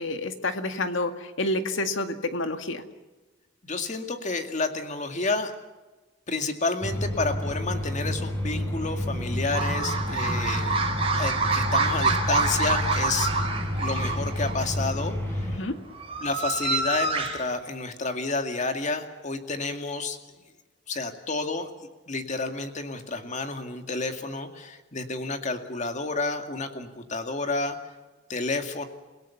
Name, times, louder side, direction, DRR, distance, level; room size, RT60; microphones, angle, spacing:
voice 1, 0.0-2.8 15.5-15.8, left 2 dB, 85° left, 8 dB, 2.0 m, -29 dB
voice 2, 3.6-5.5 6.3-10.7 11.2-13.3 13.8-15.5 16.2-20.2 20.9-21.7 22.1-27.8 28.3-28.8, left 3 dB, 40° left, 6 dB, 2.3 m, -30 dB
sound 1, 6.8-15.6, left 1 dB, 10° left, 5.3 m, -30 dB
sound 2, 9.5-14.7 15.7-17.4, right 3 dB, 30° right, 4.8 m, -27 dB
29.0 x 17.5 x 7.2 m, 1.2 s
head